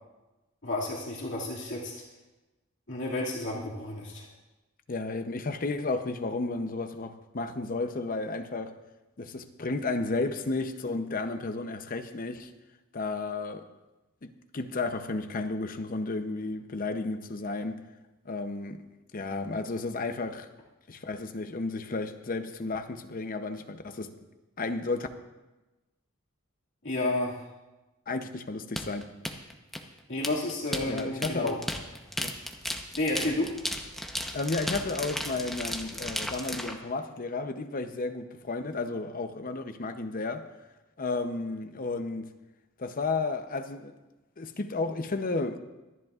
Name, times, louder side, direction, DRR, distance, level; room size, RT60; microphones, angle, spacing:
voice 1, 0.6-2.0 2.9-4.3 26.8-27.4 30.1-31.6 33.0-33.5, left 2 dB, 60° left, 2.2 m, -31 dB
voice 2, 4.9-8.8 9.2-12.5 12.9-13.7 14.2-17.8 18.2-18.8 19.1-20.5 20.9-24.1 24.6-25.1 28.1-29.1 30.9-31.6 32.2-32.3 34.1-40.5 41.0-42.3 42.8-43.9 44.4-45.6, left 3 dB, 40° left, 0.7 m, -33 dB
sound 1, 28.8-36.7, equal, ahead, 0.8 m, -35 dB
25.0 x 10.5 x 2.5 m
head